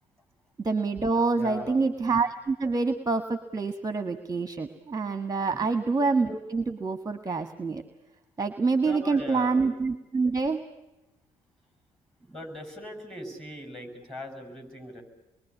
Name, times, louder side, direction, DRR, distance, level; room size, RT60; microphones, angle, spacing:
voice 1, 0.6-7.8 8.4-10.7, right 4 dB, 20° right, 9 dB, 1.5 m, -27 dB
voice 2, 1.3-1.8 5.5-5.7 8.8-9.7 12.2-15.0, left 1 dB, ahead, 3 dB, 7.3 m, -40 dB
27.0 x 22.5 x 8.4 m, 1.0 s
figure-of-eight pair, 45°, 19 cm